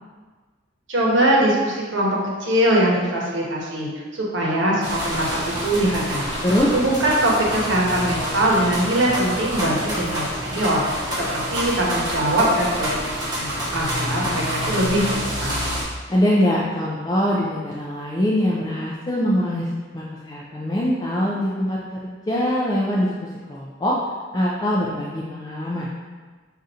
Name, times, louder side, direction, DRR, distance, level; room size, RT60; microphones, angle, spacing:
voice 1, 0.9-6.3 6.7-15.6, right 1 dB, 75° right, -3 dB, 0.9 m, -22 dB
sound 1, 4.8-15.8, equal, 20° right, 0.9 m, -27 dB
voice 2, 6.4-6.7 16.1-19.7 19.9-21.8 22.0-23.1 23.5-24.0 24.3-25.9, equal, 20° left, -5 dB, 0.3 m, -22 dB
5.3 x 2.4 x 2.7 m, 1.4 s
head